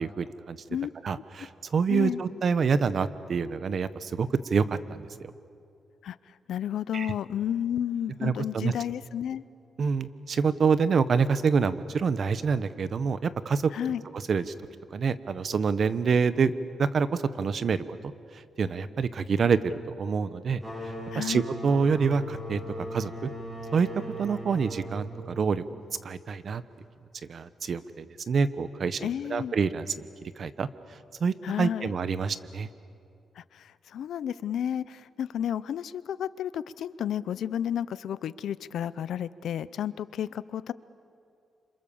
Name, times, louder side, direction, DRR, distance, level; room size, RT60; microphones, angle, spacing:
voice 1, 0.0-0.6 1.0-5.3 6.9-7.1 8.2-8.7 9.8-13.7 14.3-14.5 14.9-16.5 16.8-23.3 23.7-23.9 24.2-26.6 27.3-30.7 31.2-32.7, right 5 dB, 50° right, 14 dB, 0.9 m, -27 dB
voice 2, 1.9-2.2 6.0-9.4 13.7-14.0 21.1-21.5 29.0-29.5 31.4-31.9 33.4-40.7, left 9 dB, 80° left, 17 dB, 0.6 m, -32 dB
sound 1, 20.6-26.0, equal, 15° right, 8.0 m, -39 dB
28.5 x 26.0 x 7.1 m, 2.5 s
cardioid pair, 130°, 0 cm